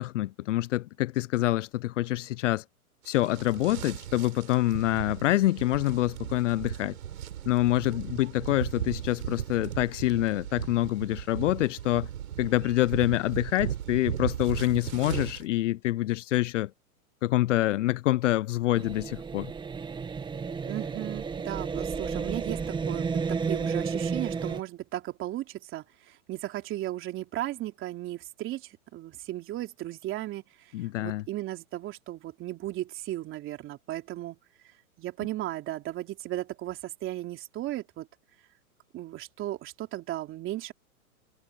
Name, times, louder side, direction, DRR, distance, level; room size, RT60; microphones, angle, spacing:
voice 1, 0.0-2.6 3.1-7.0 7.5-12.1 12.4-16.7 17.2-19.5 30.7-31.2, left 16 dB, 55° left, 0.8 m, -26 dB
sound 1, 3.1-15.4, right 10 dB, 75° right, 7.4 m, -37 dB
sound 2, 18.7-24.6, right 5 dB, 10° right, 1.6 m, -32 dB
voice 2, 20.7-30.7 31.0-34.4 35.0-38.1 38.9-40.7, right 15 dB, 25° right, 3.5 m, -36 dB
hypercardioid pair, 135°, 45 cm